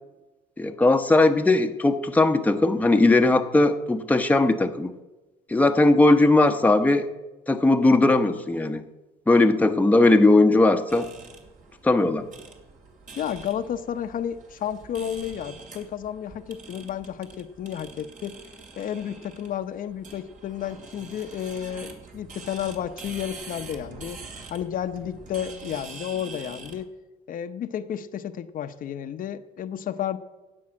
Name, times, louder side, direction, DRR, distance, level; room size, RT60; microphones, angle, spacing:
voice 1, 0.6-4.9 5.5-7.1 7.5-8.8 9.3-11.1 11.8-12.3, left 2 dB, 10° left, 6 dB, 0.8 m, -19 dB
sound 1, 10.9-26.8, right 4 dB, 50° right, 2.6 m, -45 dB
voice 2, 13.2-18.4 18.8-24.2 24.5-26.9 27.3-30.2, left 9 dB, 55° left, 8 dB, 0.8 m, -32 dB
16.0 x 5.5 x 8.7 m, 1.1 s
cardioid pair, 110°, 17 cm